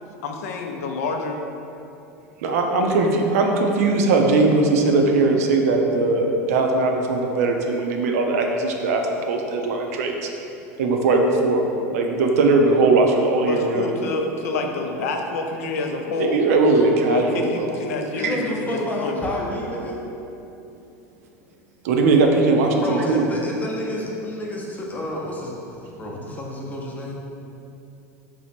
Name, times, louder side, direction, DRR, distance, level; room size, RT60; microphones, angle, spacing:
voice 1, 0.2-1.4 13.5-16.5 17.1-19.3, left 3 dB, 75° left, 3 dB, 0.4 m, -27 dB
voice 2, 2.4-10.3 10.8-11.6 11.9-13.9 16.2-17.7 18.2-18.4 21.8-23.2, right 3 dB, 75° right, 2 dB, 0.4 m, -19 dB
voice 3, 18.2-20.0 22.8-27.1, left 1 dB, 20° left, -2 dB, 0.6 m, -29 dB
3.0 x 2.0 x 4.1 m, 2.9 s
hypercardioid pair, 100°, 8 cm